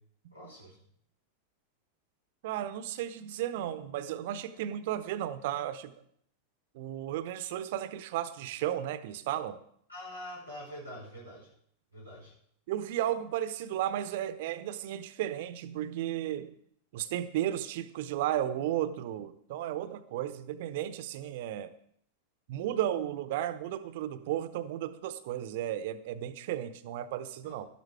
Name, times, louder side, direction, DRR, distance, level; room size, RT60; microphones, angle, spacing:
voice 1, 0.3-0.8 9.9-11.5 11.9-12.3 27.4-27.6, left 1 dB, 85° left, -3 dB, 5.0 m, -45 dB
voice 2, 2.4-5.9 6.7-9.6 12.7-16.5 16.9-21.7 22.5-27.7, right 12 dB, 50° right, 12 dB, 0.9 m, -34 dB
12.5 x 11.5 x 4.7 m, 0.66 s
figure-of-eight pair, 90°, 0 cm